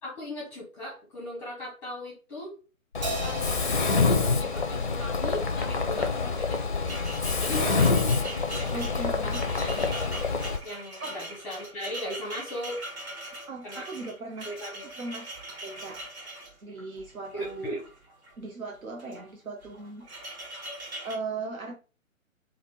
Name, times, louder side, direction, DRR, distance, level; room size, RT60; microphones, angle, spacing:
voice 1, 0.0-2.5 3.1-6.9 7.4-8.0 8.3-9.3 9.6-10.2 10.6-12.8 13.6-13.9 14.4-14.8 17.3-17.8, left 1 dB, 5° left, 0.7 m, -38 dB
Mechanisms, 2.9-10.6, left 4 dB, 40° left, 0.4 m, -26 dB
Crash cymbal, 3.0-5.7, right 2 dB, 30° right, 0.8 m, -39 dB
sound 1, 6.1-18.4 18.9-19.3 19.6-21.2, right 1 dB, 50° right, 1.7 m, -42 dB
voice 2, 7.5-7.8 8.7-9.4 11.0-11.2 13.4-14.5 14.8-15.3 15.6-16.0 16.6-17.7 18.4-20.1 21.0-21.7, right 3 dB, 80° right, 0.8 m, -38 dB
3.4 x 2.4 x 3.7 m
figure-of-eight pair, 140°, 42 cm